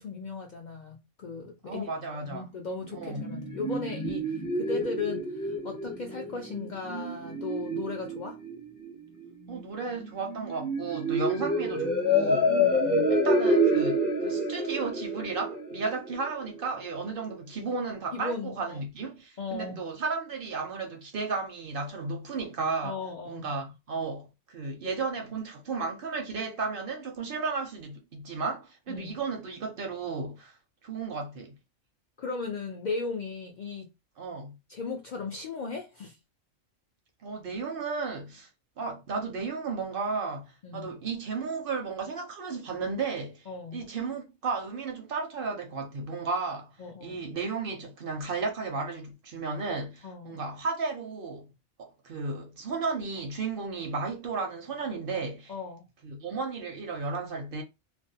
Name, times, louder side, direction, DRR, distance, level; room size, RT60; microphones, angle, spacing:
voice 1, 0.0-1.9 2.2-8.4 12.6-13.2 18.1-18.8 19.4-19.8 22.8-23.5 28.9-29.2 32.2-33.9 34.7-36.2 40.6-40.9 43.5-43.8 46.8-47.2 50.0-50.4 55.5-55.8, left 4 dB, 80° left, 0.4 m, -37 dB
voice 2, 1.6-2.5 2.9-3.2 9.5-12.5 13.1-23.0 23.3-30.6 30.8-31.5 34.2-34.6 37.2-38.5 38.8-46.7 47.0-51.5 51.8-55.5 56.0-57.6, right 4 dB, 60° right, 0.6 m, -34 dB
sound 1, 2.7-16.7, equal, 40° left, 0.8 m, -28 dB
2.4 x 2.1 x 2.6 m
omnidirectional pair, 1.3 m